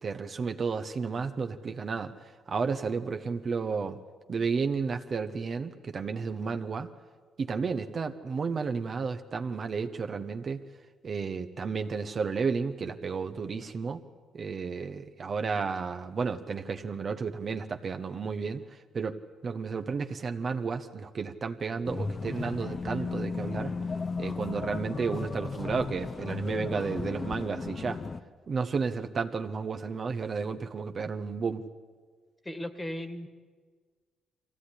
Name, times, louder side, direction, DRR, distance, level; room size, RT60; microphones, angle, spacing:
voice 1, 0.0-4.0 4.3-6.9 7.4-10.6 11.0-14.0 14.3-19.2 19.4-23.7 24.2-28.0 28.5-31.7, right 5 dB, 45° right, 7 dB, 1.0 m, -32 dB
sound 1, 21.8-28.2, left 4 dB, 35° left, 0.8 m, -35 dB
voice 2, 32.4-33.3, left 1 dB, 15° left, 9 dB, 1.8 m, -36 dB
23.0 x 16.0 x 9.9 m, 1.5 s
cardioid pair, 90°, 0 cm